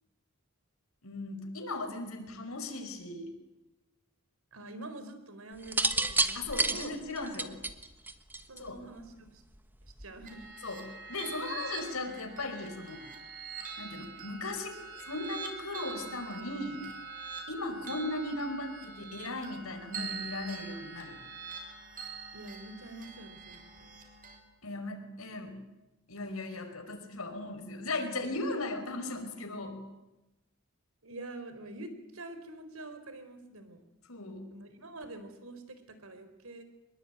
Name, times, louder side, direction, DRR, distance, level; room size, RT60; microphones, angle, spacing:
voice 1, 1.0-3.4 6.3-7.6 8.6-8.8 10.6-13.0 13.8-14.8 15.0-16.9 17.5-21.2 24.6-25.6 26.1-29.8 34.1-34.5, left 2 dB, 85° left, 6 dB, 5.3 m, -37 dB
voice 2, 4.5-7.0 8.5-9.4 9.8-10.5 22.3-23.6 31.0-33.8 34.5-36.6, right 2 dB, 80° right, 9 dB, 4.4 m, -46 dB
sound 1, 5.6-8.8 9.9-10.2, right 2 dB, 10° right, 1.4 m, -30 dB
sound 2, 10.3-24.4, right 5 dB, 40° right, 6.4 m, -44 dB
25.5 x 22.0 x 9.2 m, 0.98 s
head